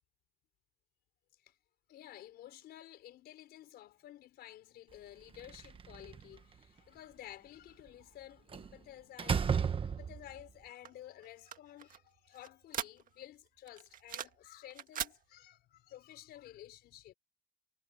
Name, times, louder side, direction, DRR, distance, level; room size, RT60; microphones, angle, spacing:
voice 1, 1.9-17.1, left 13 dB, 70° left, 4.6 m, -53 dB
Slam, 5.3-6.4 8.5-8.7 9.2-10.4, right 6 dB, 30° right, 1.3 m, -33 dB
sound 1, 10.8-13.3 13.7-14.5 14.7-15.2, right 9 dB, 55° right, 1.8 m, -41 dB
cardioid pair, 110°, 17 cm